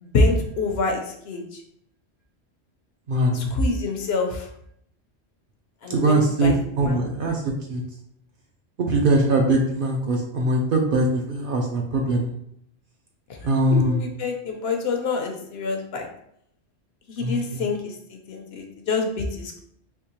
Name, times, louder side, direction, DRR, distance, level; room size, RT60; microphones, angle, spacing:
voice 1, 0.0-1.6 3.3-4.5 5.8-7.0 13.7-16.1 17.1-18.0 18.3-19.6, left 3 dB, 65° left, 3 dB, 0.8 m, -26 dB
voice 2, 3.1-3.5 5.9-7.4 7.7-7.8 8.9-12.3 13.4-14.0 17.2-17.6, right 1 dB, 60° right, 1 dB, 0.6 m, -22 dB
3.5 x 3.0 x 2.9 m, 0.71 s
omnidirectional pair, 1.2 m